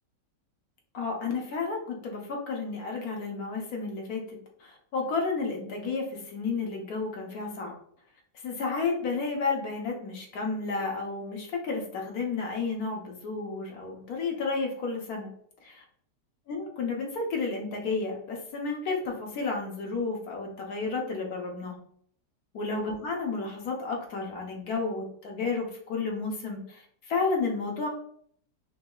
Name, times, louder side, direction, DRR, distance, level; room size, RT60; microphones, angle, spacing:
voice 1, 0.9-7.7 8.4-15.3 15.6-15.7 16.5-21.8 22.5-27.9, left 4 dB, 60° left, 0 dB, 1.3 m, -32 dB
6.0 x 2.7 x 2.3 m, 0.62 s
omnidirectional pair, 1.9 m